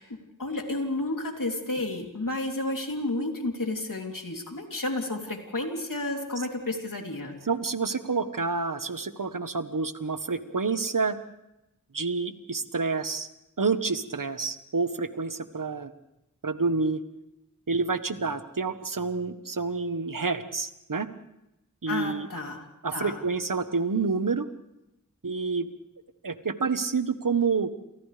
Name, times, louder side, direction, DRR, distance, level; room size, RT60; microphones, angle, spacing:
voice 1, 0.0-7.4 21.9-23.2, left 2 dB, 85° left, 2 dB, 3.2 m, -31 dB
voice 2, 7.5-11.2 11.9-13.3 13.6-15.9 16.4-17.0 17.7-21.1 21.8-22.3 22.8-24.5 25.2-25.7 26.2-27.7, right 4 dB, 85° right, 9 dB, 1.3 m, -28 dB
29.5 x 27.5 x 3.4 m, 0.89 s
wide cardioid pair, 40°, 32 cm